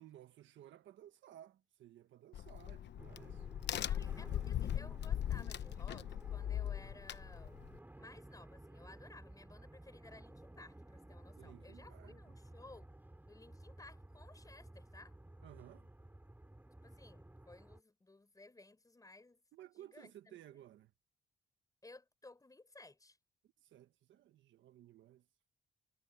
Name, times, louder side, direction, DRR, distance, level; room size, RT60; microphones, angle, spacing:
voice 1, 0.0-3.5 4.0-4.5 11.4-12.2 15.4-15.9 19.5-20.9 23.6-25.3, right 12 dB, 80° right, 1.4 m, -58 dB
Crack, 2.3-7.8, left 11 dB, 65° left, 0.9 m, -39 dB
sound 1, 3.0-17.8, right 1 dB, 10° right, 6.1 m, -55 dB
voice 2, 3.9-7.6 8.0-12.9 13.3-15.1 16.8-19.4 19.8-20.6 21.8-23.2, left 2 dB, 20° left, 6.4 m, -58 dB
cardioid pair, 90°, 19 cm